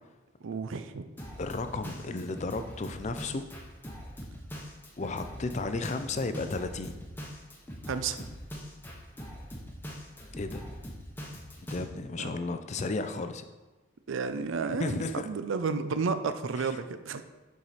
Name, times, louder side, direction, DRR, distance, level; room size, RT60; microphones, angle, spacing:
voice 1, 0.4-1.1 7.9-8.2 12.2-12.4 14.1-17.2, right 5 dB, 65° right, 10 dB, 0.4 m, -32 dB
Drum kit, 1.2-11.8, equal, 10° left, 0.9 m, -42 dB
voice 2, 1.4-3.4 5.0-6.9 10.4-10.7 11.7-13.4 14.8-15.3 16.6-16.8, left 3 dB, 35° left, 9 dB, 0.4 m, -33 dB
7.0 x 4.8 x 4.1 m, 1.2 s
head